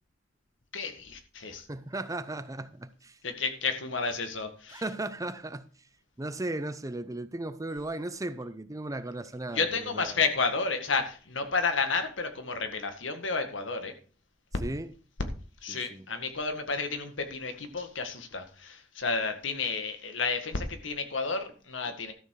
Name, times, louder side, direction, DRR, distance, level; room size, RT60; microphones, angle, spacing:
voice 1, 0.7-1.7 3.2-4.8 9.5-13.9 15.6-22.1, left 4 dB, 75° left, 1.8 m, -31 dB
voice 2, 1.7-3.2 4.7-5.7 6.2-10.2 14.6-14.9 15.7-16.1, right 2 dB, 20° right, 0.6 m, -36 dB
12.5 x 7.1 x 4.8 m
head